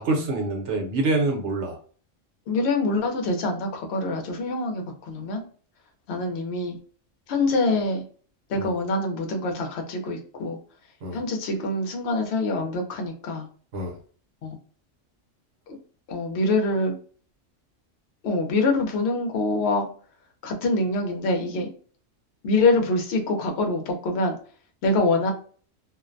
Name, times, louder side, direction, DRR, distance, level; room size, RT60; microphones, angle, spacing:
voice 1, 0.0-1.8 8.6-8.7 11.0-11.2 13.7-13.9, right 2 dB, 65° right, 1 dB, 1.0 m, -26 dB
voice 2, 2.5-5.4 6.1-6.8 7.3-8.0 8.5-10.6 11.1-13.5 14.4-14.6 16.1-17.0 18.2-19.9 20.4-21.7 22.4-24.4 24.8-25.3, left 2 dB, 65° left, 3 dB, 0.8 m, -25 dB
2.5 x 2.1 x 2.4 m, 0.43 s
omnidirectional pair, 1.3 m